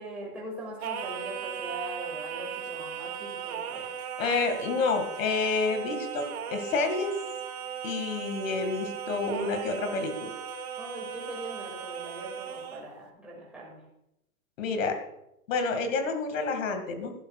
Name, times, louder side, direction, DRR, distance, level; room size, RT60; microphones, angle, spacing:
voice 1, 0.0-3.9 10.8-13.8, right 1 dB, 5° right, -5 dB, 2.3 m, -41 dB
Singing, 0.8-12.9, right 8 dB, 80° right, 1.6 m, -37 dB
voice 2, 4.2-6.3 6.5-7.1 7.8-10.3 14.6-15.0 15.5-17.1, left 4 dB, 60° left, 6 dB, 2.2 m, -29 dB
14.5 x 11.5 x 2.4 m, 0.83 s
hypercardioid pair, 165°, 43 cm